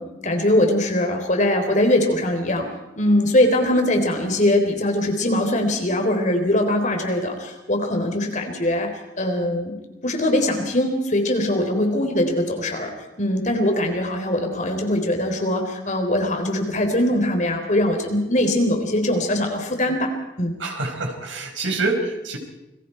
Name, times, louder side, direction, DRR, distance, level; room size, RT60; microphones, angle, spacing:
voice 1, 0.0-2.7 3.0-8.9 9.2-9.8 10.0-12.9 13.2-20.1 20.4-20.6, left 1 dB, 40° left, 4 dB, 3.7 m, -21 dB
voice 2, 20.6-22.4, right 3 dB, 90° right, 3 dB, 5.1 m, -26 dB
28.5 x 21.0 x 4.5 m, 1.0 s
head